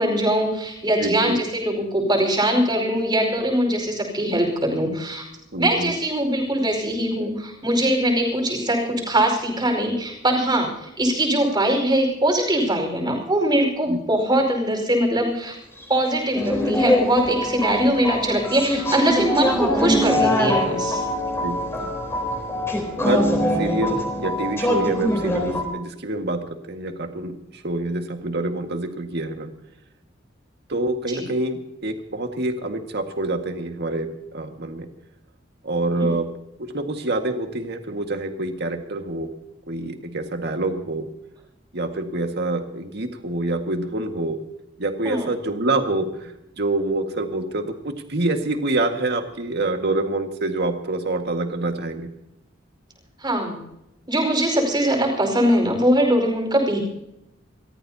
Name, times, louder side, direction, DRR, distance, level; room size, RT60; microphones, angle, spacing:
voice 1, 0.0-5.2 5.5-15.5 15.9-21.0 31.1-31.3 36.0-36.1 45.0-45.3 53.2-53.6 54.1-56.8, right 1 dB, 25° right, 1 dB, 5.0 m, -22 dB
voice 2, 1.0-1.4 5.5-5.9 13.9-14.0 21.4-21.9 23.0-23.3 23.6-29.5 30.7-34.9 35.6-36.3 36.6-39.3 39.7-41.1 41.7-44.4 44.8-52.1, right 2 dB, 60° right, 5 dB, 1.8 m, -26 dB
sound 1, 16.3-25.6, left 1 dB, 15° left, 3.9 m, -23 dB
28.0 x 14.0 x 2.8 m, 0.85 s
head